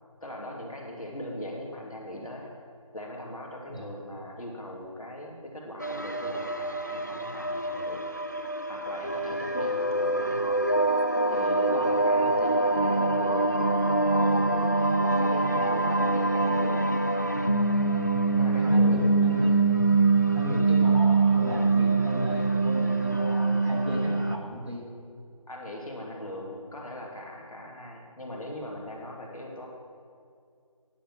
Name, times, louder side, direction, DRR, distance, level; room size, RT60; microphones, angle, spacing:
voice 1, 0.2-2.5 2.9-8.2 8.7-10.8 11.3-16.9 18.4-19.0 19.4-19.6 25.5-29.7, left 1 dB, 75° left, -1 dB, 2.5 m, -40 dB
sound 1, 5.8-24.4, right 3 dB, 30° left, 0.3 m, -24 dB
voice 2, 18.6-19.7 20.3-24.9, equal, 50° right, -2 dB, 2.2 m, -36 dB
10.0 x 7.4 x 6.2 m, 2.3 s
figure-of-eight pair, 170°, 19 cm